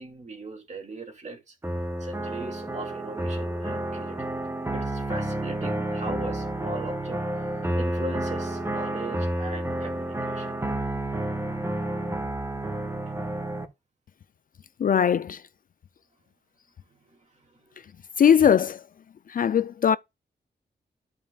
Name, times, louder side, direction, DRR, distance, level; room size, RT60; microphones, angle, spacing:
voice 1, 0.0-1.6 2.0-4.4 4.7-10.5 16.9-17.8, right 2 dB, 40° right, 2.4 m, -40 dB
sound 1, 1.6-13.6, right 1 dB, 15° right, 1.3 m, -30 dB
voice 2, 14.8-15.4 18.2-18.8 19.3-20.0, left 8 dB, 50° left, 0.4 m, -20 dB
13.5 x 5.4 x 2.3 m
wide cardioid pair, 140°, 18 cm